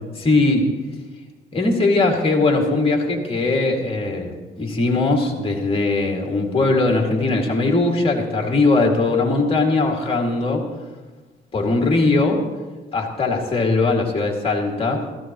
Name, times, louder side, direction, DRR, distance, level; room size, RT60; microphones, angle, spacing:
voice 1, 0.1-0.7 1.5-10.7 11.5-12.4 12.9-15.1, left 3 dB, 30° left, 1 dB, 2.4 m, -20 dB
16.0 x 14.0 x 3.1 m, 1.3 s
cardioid pair, 90°, 20 cm